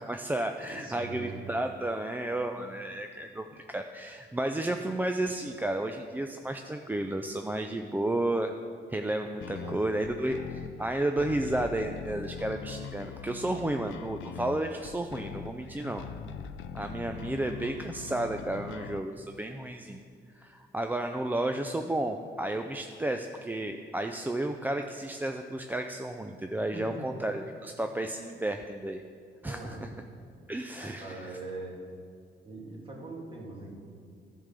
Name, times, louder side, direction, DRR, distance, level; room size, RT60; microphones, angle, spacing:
voice 1, 0.0-8.5 8.9-10.4 10.8-16.0 16.7-20.0 20.4-29.0 29.4-29.9 30.5-31.4, right 1 dB, 10° right, 5 dB, 0.3 m, -32 dB
voice 2, 0.6-1.3 9.6-10.1 15.8-15.9 26.7-27.2 29.4-29.9 30.8-31.9 32.4-33.8, right 2 dB, 25° right, -3 dB, 2.1 m, -42 dB
sound 1, 9.4-19.0, left 7 dB, 75° left, 0.5 m, -42 dB
11.0 x 3.7 x 6.8 m, 2.2 s
cardioid pair, 90°, 20 cm